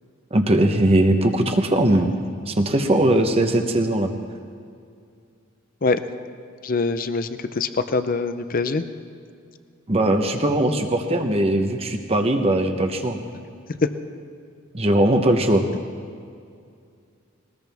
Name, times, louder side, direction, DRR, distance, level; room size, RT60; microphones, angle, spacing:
voice 1, 0.3-2.1 2.5-4.1 9.9-13.2 14.7-15.6, right 1 dB, 30° right, 4 dB, 1.0 m, -20 dB
voice 2, 6.6-8.8 13.8-13.9, left 3 dB, 45° left, 11 dB, 0.7 m, -23 dB
20.0 x 19.5 x 3.5 m, 2.3 s
head